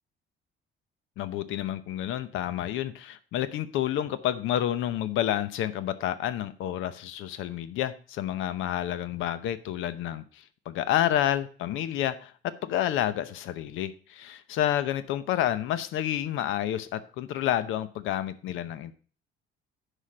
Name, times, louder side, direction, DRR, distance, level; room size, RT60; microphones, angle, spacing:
voice 1, 1.2-18.9, left 11 dB, 80° left, 14 dB, 0.8 m, -29 dB
10.0 x 5.1 x 5.0 m, 0.41 s
cardioid pair, 180°, 20 cm